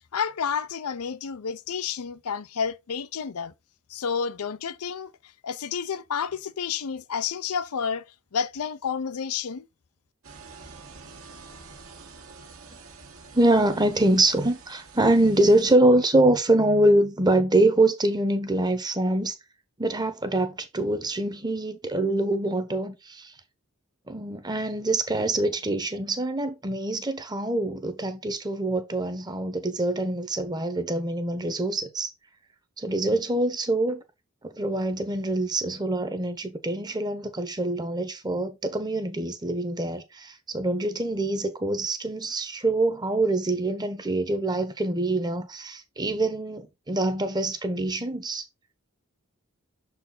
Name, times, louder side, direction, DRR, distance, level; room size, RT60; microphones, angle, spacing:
voice 1, 0.1-3.5 3.9-5.1 5.4-8.0 8.3-9.7, left 6 dB, 80° left, 0.5 m, -30 dB
sound 1, 10.2-15.8, right 4 dB, 70° right, 1.5 m, -47 dB
voice 2, 13.3-19.4 19.8-23.3 24.1-32.1 32.8-34.0 34.4-48.4, right 2 dB, 20° right, 0.9 m, -24 dB
6.7 x 4.4 x 3.8 m
head